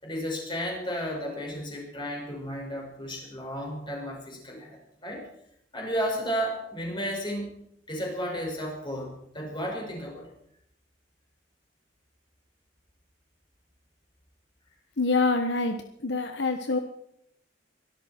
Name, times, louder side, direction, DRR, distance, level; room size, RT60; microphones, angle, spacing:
voice 1, 0.0-5.3 5.7-7.6 7.9-10.3, equal, 25° left, -1 dB, 6.1 m, -33 dB
voice 2, 15.0-15.8 16.0-16.8, left 3 dB, 65° left, 6 dB, 1.3 m, -25 dB
23.5 x 13.0 x 4.6 m, 0.73 s
head